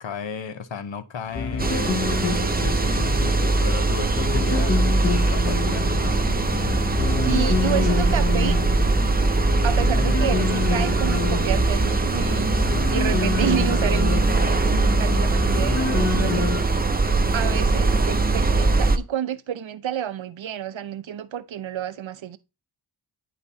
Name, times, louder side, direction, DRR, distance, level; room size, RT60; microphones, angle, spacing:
voice 1, 0.0-6.4, left 7 dB, 75° left, 0.8 m, -35 dB
sound 1, 1.3-16.6, left 5 dB, 30° left, 0.7 m, -28 dB
sound 2, 1.6-19.0, right 3 dB, 20° right, 0.5 m, -21 dB
voice 2, 7.2-8.6 9.6-16.5 17.3-22.4, right 9 dB, 80° right, 0.6 m, -30 dB
10.5 x 4.2 x 2.7 m
wide cardioid pair, 85°, 45 cm